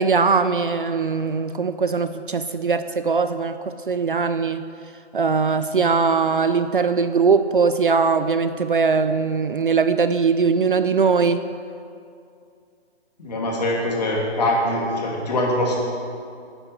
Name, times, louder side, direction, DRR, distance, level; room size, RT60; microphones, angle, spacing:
voice 1, 0.0-3.6 3.9-4.6 5.1-11.4, right 5 dB, 50° right, 11 dB, 0.5 m, -20 dB
voice 2, 13.2-15.8, left 1 dB, 40° left, -2 dB, 2.8 m, -23 dB
11.0 x 9.2 x 7.9 m, 2.4 s
hypercardioid pair, 175°, 34 cm